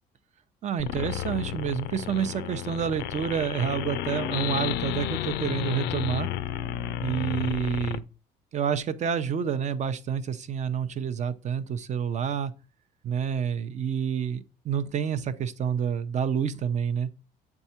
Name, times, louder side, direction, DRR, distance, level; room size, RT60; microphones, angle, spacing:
voice 1, 0.6-6.3 7.0-8.0 8.5-12.5 13.0-17.1, right 8 dB, 45° right, 0.6 m, -28 dB
rainbow raw, 0.8-8.0, left 11 dB, 85° left, 0.4 m, -32 dB
7.8 x 3.6 x 4.3 m
cardioid pair, 110°, 17 cm